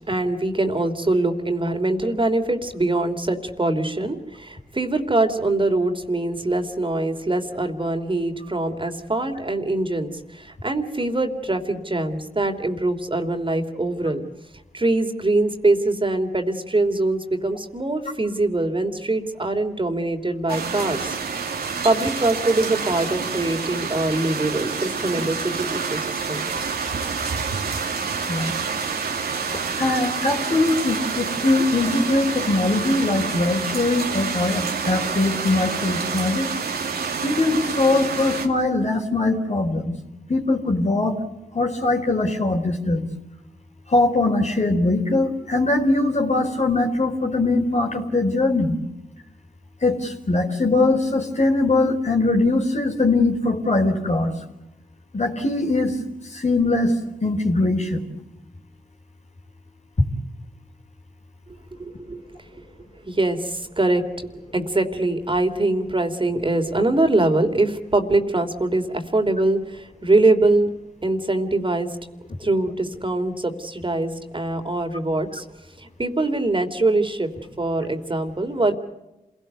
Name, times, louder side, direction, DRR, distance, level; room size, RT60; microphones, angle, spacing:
voice 1, 0.0-14.2 14.7-21.1 21.8-26.5 61.8-62.2 63.0-70.7 71.0-71.9 72.4-75.4 75.8-77.3 77.6-78.7, right 2 dB, 35° right, 5 dB, 3.3 m, -23 dB
sound 1, 20.5-38.5, right 5 dB, 85° right, 2.5 m, -28 dB
voice 2, 29.8-36.5 37.2-39.9 40.3-41.2 41.5-43.1 43.9-48.7 49.8-54.3 55.1-55.9 56.3-56.9 57.2-58.0, left 2 dB, 50° left, 3 dB, 4.4 m, -21 dB
27.0 x 18.0 x 8.2 m, 0.98 s
cardioid pair, 45°, 16 cm